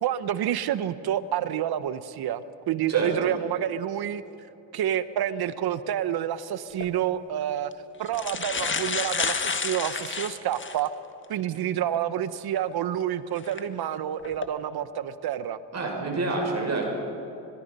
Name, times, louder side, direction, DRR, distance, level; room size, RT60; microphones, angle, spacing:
voice 1, 0.0-4.2 4.7-7.7 8.0-10.9 11.3-15.6, right 10 dB, 60° right, 14 dB, 1.1 m, -28 dB
voice 2, 2.9-3.3 15.7-16.8, right 3 dB, 35° right, 0 dB, 6.3 m, -28 dB
sound 1, 6.7-6.9 7.7-7.8 8.1-10.9 11.4-11.5 13.4-13.6 14.2-14.5, left 5 dB, 25° left, 1.7 m, -30 dB
25.5 x 21.5 x 5.5 m, 2.9 s
supercardioid pair, 85°, 43 cm